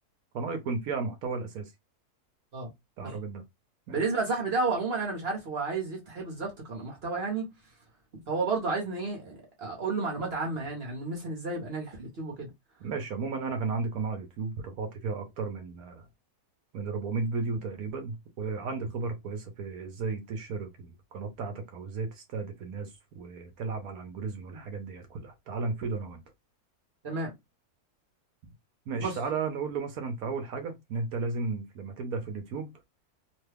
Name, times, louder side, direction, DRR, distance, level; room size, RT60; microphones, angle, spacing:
voice 1, 0.3-1.7 3.0-3.4 3.9-4.0 12.8-16.1 16.7-26.2 28.9-32.7, right 4 dB, 70° right, 1.1 m, -34 dB
voice 2, 3.9-7.5 8.3-12.5 27.0-27.3 29.0-29.2, right 3 dB, 45° right, 1.1 m, -31 dB
3.0 x 2.2 x 3.3 m
omnidirectional pair, 1.6 m